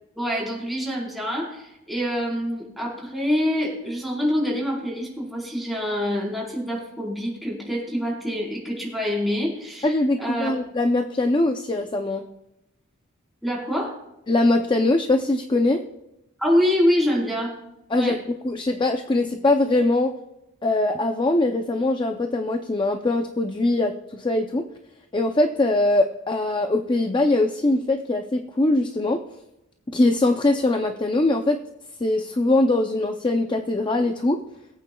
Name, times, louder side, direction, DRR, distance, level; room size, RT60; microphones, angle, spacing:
voice 1, 0.2-10.5 13.4-14.0 16.4-17.5 17.9-18.2, equal, ahead, -3 dB, 4.2 m, -25 dB
voice 2, 9.8-12.2 14.3-15.8 17.9-18.2 18.4-20.1 20.6-24.7 25.1-29.2 29.9-31.6 32.0-34.4, left 2 dB, 20° left, 5 dB, 0.5 m, -22 dB
22.0 x 8.9 x 2.3 m, 0.88 s
head